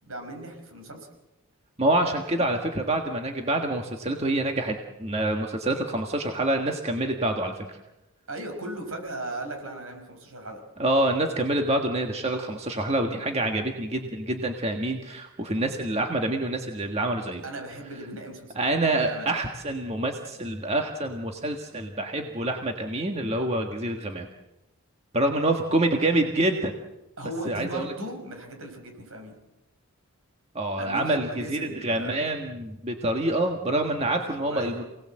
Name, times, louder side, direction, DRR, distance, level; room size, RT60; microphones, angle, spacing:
voice 1, 0.0-1.1 8.3-10.6 17.4-18.6 19.0-19.3 27.2-29.4 30.8-32.2 34.4-34.8, right 1 dB, 70° right, 4 dB, 5.7 m, -37 dB
voice 2, 1.8-7.8 10.8-17.4 18.5-24.3 25.1-26.7 27.4-27.9 30.5-34.8, right 1 dB, 30° right, 3 dB, 1.6 m, -26 dB
27.5 x 19.0 x 7.7 m, 0.97 s
head